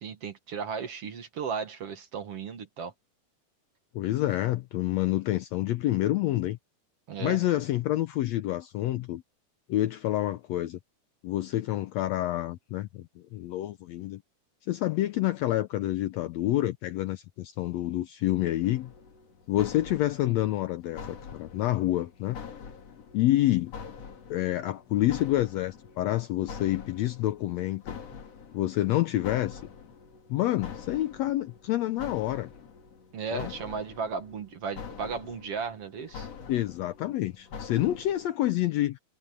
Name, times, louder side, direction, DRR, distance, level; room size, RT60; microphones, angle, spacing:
voice 1, 0.0-2.9 7.1-7.4 33.1-36.3, right 6 dB, 55° right, 2.4 m, -35 dB
voice 2, 4.0-6.6 7.2-9.2 9.7-10.8 11.2-14.2 14.7-18.9 19.5-22.4 23.1-23.7 24.3-28.0 28.5-29.6 30.3-32.5 33.3-33.5 36.5-39.0, left 14 dB, 75° left, 1.6 m, -28 dB
sound 1, 18.6-38.3, left 6 dB, 55° left, 3.1 m, -45 dB
omnidirectional pair, 3.6 m